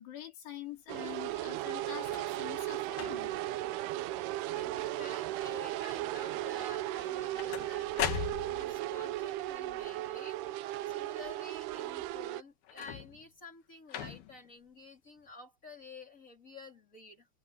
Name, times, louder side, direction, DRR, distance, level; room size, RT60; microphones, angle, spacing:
voice 1, 0.0-3.3, left 12 dB, 85° left, 5.3 m, -45 dB
sound 1, 0.9-12.4, right 15 dB, 80° right, 2.7 m, -36 dB
sound 2, 1.9-2.4 2.9-3.5 4.1-4.4 4.7-5.3 7.0-8.8 12.6-13.3 13.9-14.5 15.3-15.4, left 9 dB, 70° left, 3.4 m, -39 dB
voice 2, 4.4-8.2 8.5-10.4 10.9-17.3, left 3 dB, 20° left, 3.2 m, -51 dB
omnidirectional pair, 4.7 m